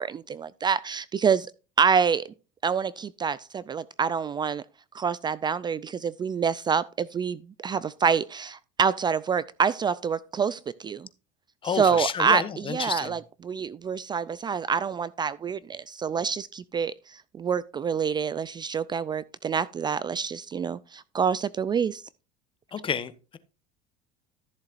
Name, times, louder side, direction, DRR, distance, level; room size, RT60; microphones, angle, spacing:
voice 1, 0.0-1.5 1.8-2.3 2.6-4.6 4.9-11.1 11.7-12.4 12.7-22.0, right 6 dB, 25° right, 0.4 m, -27 dB
voice 2, 11.6-13.2 22.7-23.4, left 7 dB, 30° left, 1.0 m, -30 dB
14.0 x 7.2 x 2.6 m
supercardioid pair, 100°, 17 cm